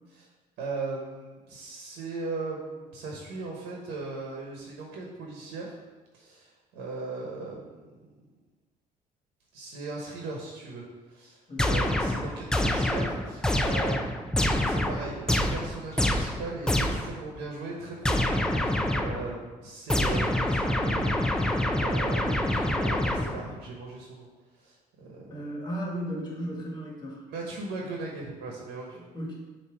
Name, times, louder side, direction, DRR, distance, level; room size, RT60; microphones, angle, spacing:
voice 1, 0.6-5.8 6.1-8.1 9.5-24.3 24.6-25.5 27.3-29.0, right 3 dB, 85° right, -1 dB, 1.1 m, -38 dB
voice 2, 11.5-11.8 25.3-27.3 28.9-29.3, equal, 25° left, -3 dB, 1.7 m, -35 dB
sound 1, 11.6-17.2 18.0-19.3 19.9-23.6, left 1 dB, 5° left, 0.4 m, -26 dB
7.2 x 2.8 x 4.6 m, 1.3 s
cardioid pair, 110°, 17 cm